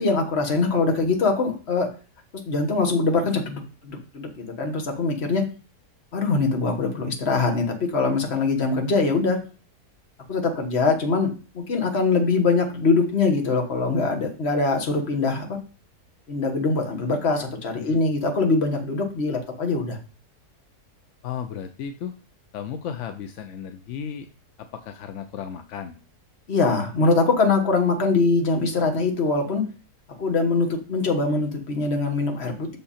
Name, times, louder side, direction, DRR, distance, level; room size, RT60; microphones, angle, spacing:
voice 1, 0.0-1.9 2.4-5.4 6.1-9.4 10.3-15.6 16.3-20.0 26.5-29.6 30.2-32.8, left 3 dB, 45° left, 2 dB, 1.5 m, -23 dB
voice 2, 21.2-22.1 22.5-24.3 24.6-26.0, left 8 dB, 65° left, 7 dB, 0.7 m, -34 dB
6.7 x 5.4 x 4.2 m, 0.36 s
omnidirectional pair, 1.7 m